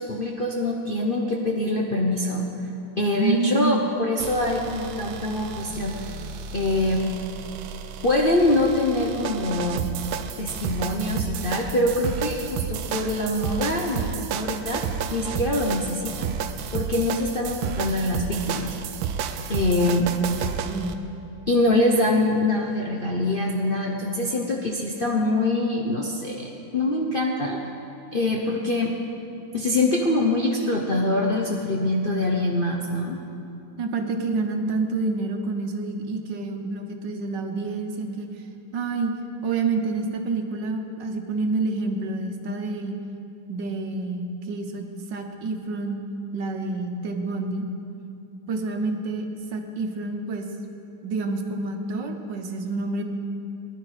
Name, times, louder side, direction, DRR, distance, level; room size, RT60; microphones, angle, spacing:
voice 1, 0.0-2.4 3.0-6.0 6.5-7.0 8.0-9.8 10.4-14.8 15.1-16.3 16.7-18.7 19.5-20.1 21.5-27.7 28.1-28.9 29.5-33.2, left 2 dB, 40° left, -2 dB, 0.8 m, -24 dB
voice 2, 3.2-3.8 20.5-21.0 33.8-38.3 38.7-39.1 39.4-42.9 43.5-46.0 46.3-47.6 48.5-50.5 51.0-53.0, right 3 dB, 65° right, 4 dB, 1.6 m, -28 dB
sound 1, 4.2-21.0, right 7 dB, 85° right, 1.4 m, -31 dB
19.0 x 11.0 x 4.9 m, 2.7 s
omnidirectional pair, 2.1 m